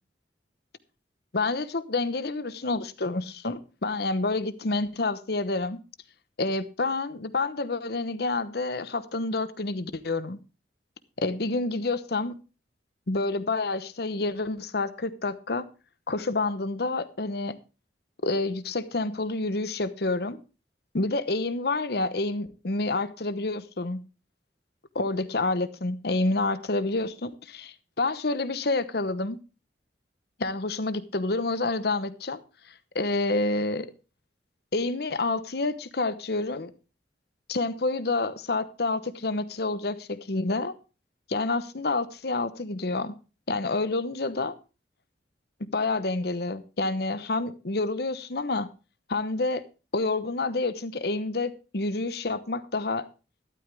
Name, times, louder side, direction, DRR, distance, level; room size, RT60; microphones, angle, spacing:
voice 1, 1.3-5.8 6.4-10.4 11.2-12.4 13.1-15.7 16.1-17.6 18.2-20.4 20.9-24.0 24.9-29.4 30.4-32.4 32.9-33.9 34.7-36.7 37.5-40.7 41.3-43.1 43.5-44.5 45.7-48.7 49.1-49.6 49.9-53.1, left 3 dB, 60° left, 1.0 m, -28 dB
13.0 x 12.0 x 3.4 m
head